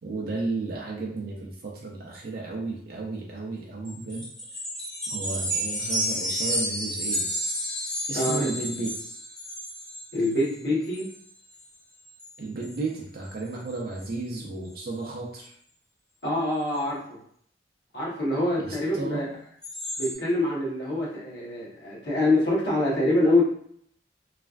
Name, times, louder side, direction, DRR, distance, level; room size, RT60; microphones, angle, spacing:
voice 1, 0.0-4.2 5.1-7.3 8.1-9.1 12.4-15.5 18.6-19.3, right 3 dB, 55° right, -2 dB, 0.5 m, -33 dB
sound 1, 3.9-10.5 10.8-11.1 11.5-11.7 12.1-12.3 12.6-12.8 13.3-13.4 13.7-14.1 19.6-20.1, equal, 5° left, 0.5 m, -31 dB
voice 2, 8.1-8.5 10.1-11.1 16.2-17.0 17.9-19.2 20.0-23.4, left 1 dB, 65° left, -6 dB, 1.1 m, -25 dB
3.2 x 2.4 x 2.4 m, 0.66 s
head